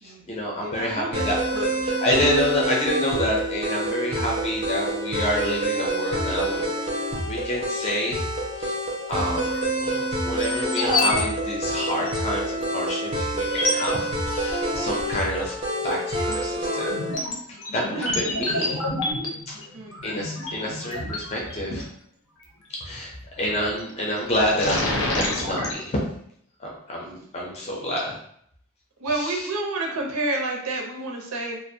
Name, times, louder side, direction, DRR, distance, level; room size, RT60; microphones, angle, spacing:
voice 1, 0.0-1.4 2.0-8.2 8.5-8.7 9.1-9.5 9.8-15.6 15.8-17.0 17.7-18.8 19.5-19.6 20.0-21.9 22.8-26.0 26.6-28.2 29.1-29.5, equal, 30° left, -3 dB, 0.5 m, -28 dB
voice 2, 0.6-2.0 19.7-20.2 29.0-31.6, right 2 dB, 90° right, 0 dB, 0.5 m, -30 dB
sound 1, 1.1-17.2, right 1 dB, 25° right, 0.5 m, -27 dB
sound 2, 9.4-9.8 10.4-11.2 11.5-11.6 12.0-12.2 12.9-13.0 13.4-13.9 15.1-15.5 15.9-21.8 23.4-23.8 24.2-25.7, left 2 dB, 75° left, 0.6 m, -28 dB
2.4 x 2.0 x 2.6 m, 0.67 s
head